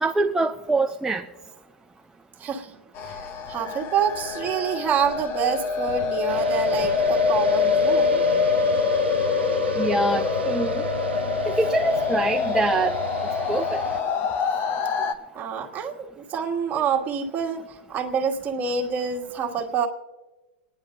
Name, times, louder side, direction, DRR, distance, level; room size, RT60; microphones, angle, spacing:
voice 1, 0.0-1.3 9.8-10.8 11.5-13.0 13.5-13.8, right 2 dB, 10° right, 2 dB, 0.4 m, -24 dB
voice 2, 2.4-2.7 3.0-8.2 15.3-19.9, right 6 dB, 30° right, 1 dB, 1.4 m, -27 dB
sound 1, 3.0-15.1, left 5 dB, 40° left, 0.8 m, -25 dB
sound 2, 6.3-14.0, right 8 dB, 90° right, 0.4 m, -35 dB
29.0 x 9.9 x 2.6 m, 1.2 s
hypercardioid pair, 110°, 6 cm